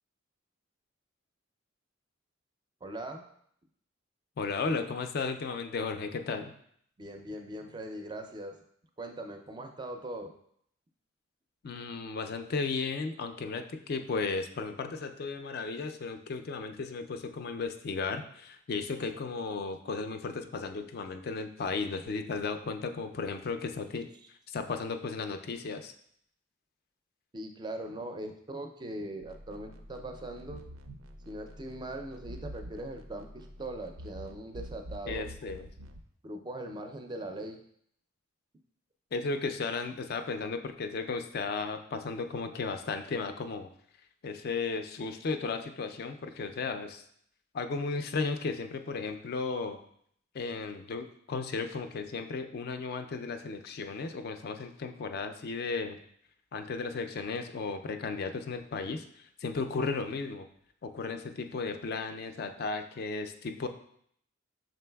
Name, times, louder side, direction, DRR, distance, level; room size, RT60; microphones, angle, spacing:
voice 1, 2.8-3.3 7.0-8.6 9.0-10.3 27.3-30.6 31.3-35.5 36.2-37.6, right 1 dB, 20° right, 5 dB, 0.4 m, -40 dB
voice 2, 4.4-6.5 11.6-24.1 24.5-25.9 35.1-35.7 39.1-43.7 44.2-47.0 47.5-49.8 50.3-56.0 56.5-60.5 60.8-63.7, left 4 dB, 50° left, 7 dB, 0.3 m, -35 dB
sound 1, 29.2-36.0, equal, 85° right, 0.4 m, -46 dB
5.9 x 3.9 x 2.2 m, 0.67 s
head